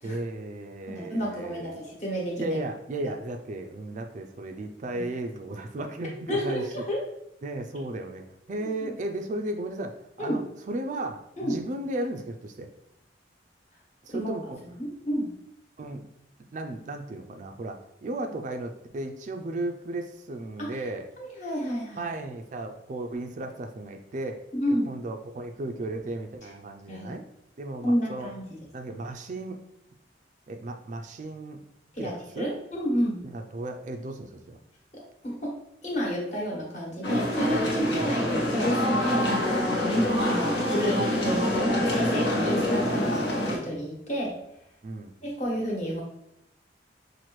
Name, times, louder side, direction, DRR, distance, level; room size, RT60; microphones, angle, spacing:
voice 1, 0.0-1.8 2.4-6.8 7.4-9.9 10.2-10.4 10.7-12.7 14.0-14.6 15.8-16.1 16.5-21.1 22.0-24.5 24.9-27.2 27.6-28.3 28.7-29.6 30.5-31.6 32.0-32.5 33.2-34.6 37.9-38.1 39.9-40.2 44.8-45.2, right 2 dB, 40° right, 5 dB, 0.3 m, -35 dB
voice 2, 0.9-2.6 3.0-3.1 6.3-7.0 8.6-8.9 10.2-10.4 11.4-11.6 14.1-14.3 14.8-15.3 20.6-20.8 21.2-22.0 24.5-24.9 26.9-27.1 27.8-28.6 31.9-33.2 34.9-35.6 35.8-39.3 40.2-44.3 45.2-46.0, equal, 40° left, -3 dB, 1.3 m, -30 dB
sound 1, 37.0-43.6, left 1 dB, 80° left, 1.2 m, -25 dB
5.8 x 2.5 x 3.0 m, 0.81 s
head